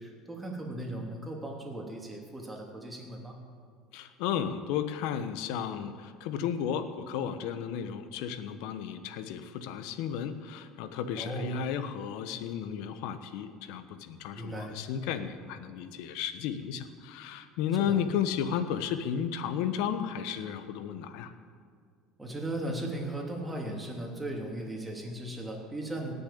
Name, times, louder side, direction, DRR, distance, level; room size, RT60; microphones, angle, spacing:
voice 1, 0.0-3.4 11.2-11.5 14.4-14.8 17.8-18.0 22.2-26.1, right 1 dB, 10° right, -1 dB, 3.3 m, -37 dB
voice 2, 3.9-21.3, left 8 dB, 75° left, 10 dB, 1.1 m, -33 dB
18.0 x 6.9 x 8.6 m, 2.1 s
supercardioid pair, 110°, 0 cm